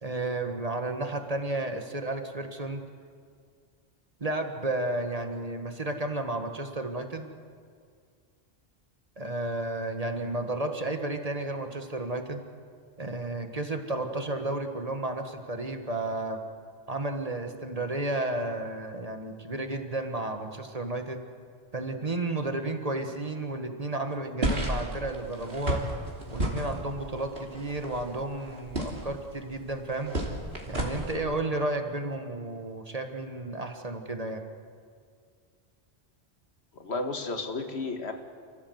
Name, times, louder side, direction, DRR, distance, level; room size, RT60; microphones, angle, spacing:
voice 1, 0.0-2.8 4.2-7.3 9.2-12.4 13.0-16.4 16.9-21.2 21.7-25.8 26.3-30.1 30.7-34.4, right 2 dB, 35° right, 5 dB, 1.7 m, -32 dB
sound 1, 24.4-31.2, right 1 dB, 65° right, 3.2 m, -33 dB
voice 2, 36.7-38.1, left 3 dB, 80° left, 5 dB, 2.0 m, -32 dB
29.0 x 15.0 x 7.9 m, 2.1 s
omnidirectional pair, 1.1 m